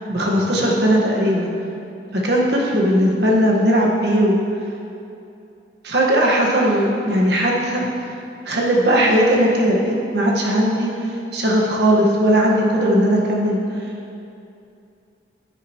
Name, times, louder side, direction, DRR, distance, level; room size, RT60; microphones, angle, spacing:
voice 1, 0.1-1.5 2.1-4.4 5.8-7.9 8.4-13.6, equal, 70° right, -2 dB, 1.4 m, -18 dB
9.8 x 9.8 x 3.0 m, 2.7 s
head